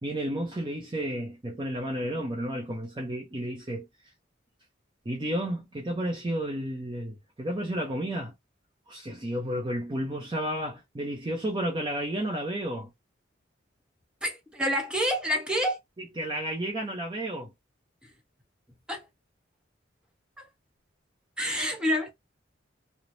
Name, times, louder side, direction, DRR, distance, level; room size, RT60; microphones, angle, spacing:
voice 1, 0.0-3.9 5.1-8.3 8.9-12.9 16.2-17.5, right 1 dB, 25° right, 0.5 m, -32 dB
voice 2, 14.2-15.8 18.0-18.1 18.9-19.1 20.4-20.5 21.4-22.1, equal, 5° right, 0.9 m, -28 dB
3.1 x 2.0 x 2.6 m
head